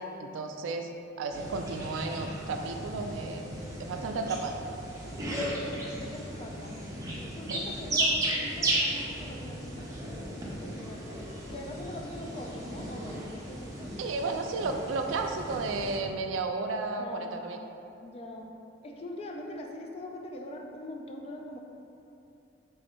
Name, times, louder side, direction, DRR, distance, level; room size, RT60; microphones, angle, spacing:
voice 1, 0.2-0.9 1.2-3.5 3.8-4.6 7.5-7.6 14.0-17.6, right 3 dB, 85° right, 5 dB, 0.3 m, -33 dB
sound 1, 1.3-16.0, right 1 dB, 20° right, 0.5 m, -35 dB
voice 2, 5.2-6.8 7.2-9.9 10.3-11.2 11.5-14.1 17.0-17.5 18.0-18.5 18.8-21.6, left 1 dB, 30° left, 2 dB, 0.3 m, -42 dB
3.7 x 2.6 x 4.2 m, 2.8 s
head